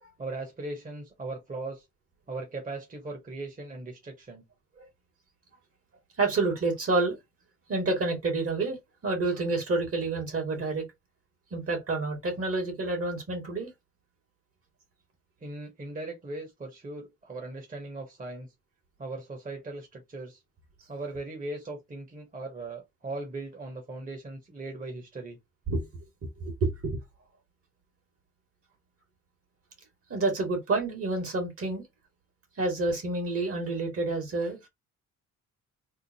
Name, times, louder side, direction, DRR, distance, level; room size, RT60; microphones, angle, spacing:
voice 1, 0.2-1.8 2.3-4.4 15.4-18.5 19.0-20.4 20.9-25.4, right 2 dB, 25° right, 1.4 m, -39 dB
voice 2, 6.2-7.2 7.7-8.8 9.0-10.9 11.5-13.7 25.7-25.9 26.2-27.0 30.1-31.8 32.6-34.7, right 3 dB, 50° right, 2.0 m, -29 dB
3.7 x 2.1 x 4.2 m
cardioid pair, 90°, 30 cm